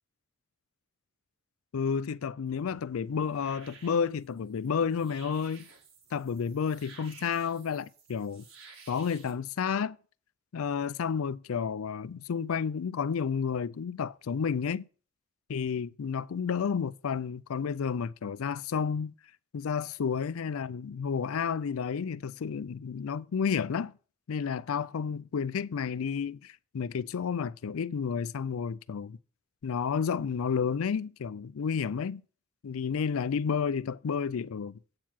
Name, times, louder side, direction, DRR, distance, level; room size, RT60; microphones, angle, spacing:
voice 1, 1.7-5.7 6.1-8.4 8.9-10.0 10.5-14.9 15.5-19.1 19.5-23.9 24.3-29.2 29.6-32.2 32.6-34.8, left 6 dB, 75° left, 0.4 m, -31 dB
sound 1, 2.5-9.3, right 5 dB, 65° right, 2.1 m, -54 dB
8.5 x 4.6 x 7.3 m
head